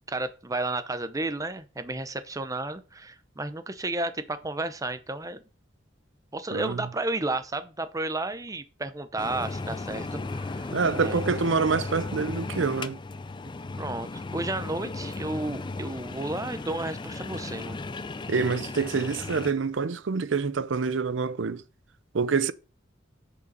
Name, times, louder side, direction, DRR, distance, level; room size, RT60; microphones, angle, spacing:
voice 1, 0.1-5.4 6.3-11.2 13.8-17.8, right 2 dB, 20° right, 0.7 m, -32 dB
sound 1, 9.2-19.5, left 3 dB, 25° left, 0.4 m, -35 dB
voice 2, 10.7-13.0 18.3-21.6 22.1-22.5, right 5 dB, 75° right, 0.6 m, -26 dB
6.8 x 5.3 x 5.4 m
head